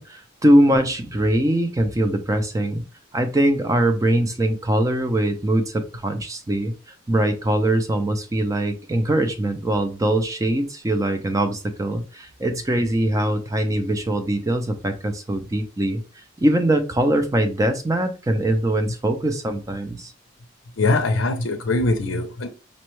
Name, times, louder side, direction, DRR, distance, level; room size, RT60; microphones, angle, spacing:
voice 1, 0.0-2.8 3.1-20.1, right 1 dB, 15° right, 0.4 m, -22 dB
voice 2, 20.8-22.5, left 2 dB, 70° left, 0.5 m, -22 dB
5.2 x 2.1 x 3.0 m
head